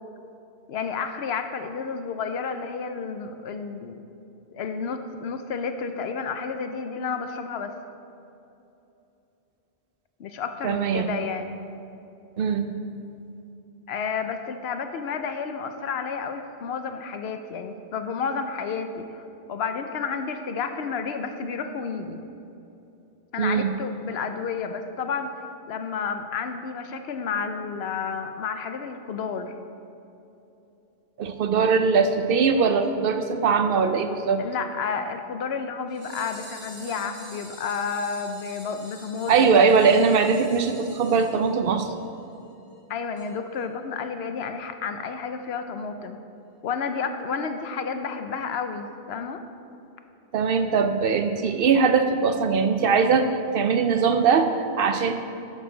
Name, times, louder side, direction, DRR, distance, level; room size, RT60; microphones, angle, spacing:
voice 1, 0.7-4.0 4.5-7.7 10.2-11.5 13.9-19.2 19.5-22.2 23.3-25.3 25.7-29.5 34.4-39.6 42.9-46.2 46.6-49.4, left 5 dB, 70° left, 7 dB, 0.8 m, -31 dB
voice 2, 10.6-11.2 12.4-12.8 23.4-23.8 31.2-34.4 39.3-41.9 50.3-55.1, right 5 dB, 65° right, 8 dB, 0.7 m, -21 dB
sound 1, 35.9-42.0 42.3-42.4 42.7-42.8 43.2-43.3 43.6-43.7, right 1 dB, 80° right, 2.8 m, -47 dB
11.5 x 6.5 x 3.9 m, 2.8 s
omnidirectional pair, 1.1 m